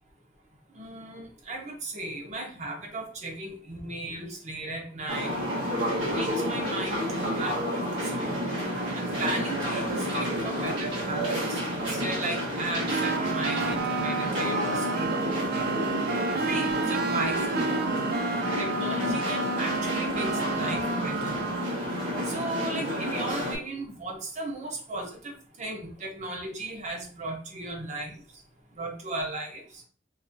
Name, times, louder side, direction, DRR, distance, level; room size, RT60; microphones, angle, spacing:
voice 1, 0.7-5.4 5.9-8.4 8.9-15.7 16.3-17.7 18.6-21.4 22.2-25.3 25.6-28.1 28.8-29.6, right 2 dB, 40° right, 1 dB, 0.9 m, -36 dB
sound 1, 5.1-23.6, equal, 90° right, 1.4 m, -30 dB
sound 2, 12.9-21.7, right 3 dB, 60° right, 0.4 m, -30 dB
4.0 x 2.7 x 2.6 m, 0.41 s
head